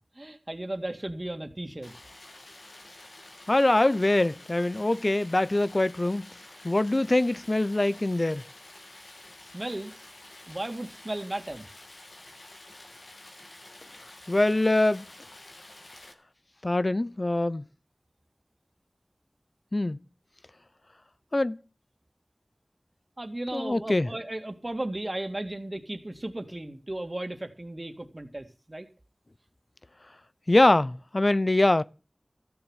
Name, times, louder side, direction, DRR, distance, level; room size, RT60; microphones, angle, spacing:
voice 1, 0.2-1.9 9.5-9.9 10.5-11.7 23.2-28.9, right 1 dB, 40° right, 2.2 m, -35 dB
Stream, 1.8-16.1, left 1 dB, 90° left, 2.2 m, -49 dB
voice 2, 3.5-6.3 6.6-8.4 14.3-15.0 16.6-17.6 19.7-20.0 21.3-21.6 23.5-24.1 30.5-31.8, left 2 dB, 45° left, 0.6 m, -23 dB
15.0 x 7.0 x 8.0 m
wide cardioid pair, 50°, 0 cm